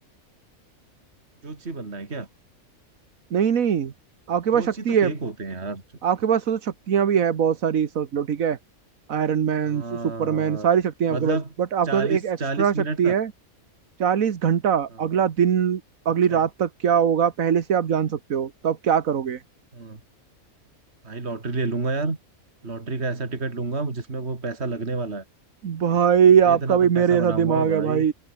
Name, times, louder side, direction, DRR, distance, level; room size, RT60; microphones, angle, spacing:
voice 1, 1.4-2.3 4.5-5.8 9.6-10.7 11.1-11.5 11.8-13.2 15.1-15.3 16.3-16.5 19.7-20.0 21.0-22.2 22.6-25.2 26.5-28.1, right 3 dB, 50° right, 3.2 m, -30 dB
voice 2, 3.3-3.9 4.3-5.1 6.0-8.6 9.1-13.3 14.0-19.4 25.6-28.1, right 8 dB, 75° right, 1.6 m, -22 dB
omnidirectional pair, 1.5 m